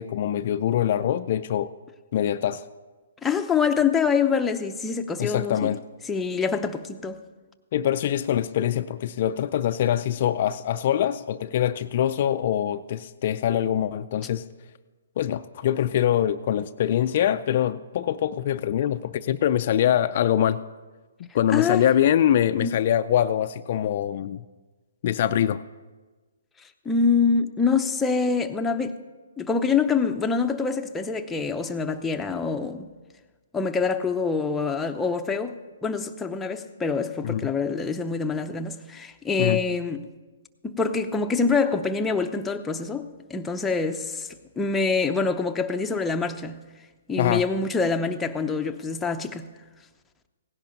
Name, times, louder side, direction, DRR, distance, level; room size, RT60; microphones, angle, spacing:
voice 1, 0.0-1.7 2.1-2.7 5.2-5.8 7.7-14.5 15.2-20.6 21.2-24.4 25.0-25.6 37.2-37.5 39.4-39.6 47.2-47.5, left 10 dB, 45° left, 0.4 m, -24 dB
voice 2, 3.2-5.7 6.1-7.2 21.5-21.9 22.6-22.7 26.9-29.0 29.4-32.9 33.5-40.0 40.6-44.3 44.6-46.6 47.1-49.4, left 5 dB, 10° left, 0.7 m, -25 dB
17.0 x 10.5 x 5.3 m
hypercardioid pair, 145°, 0 cm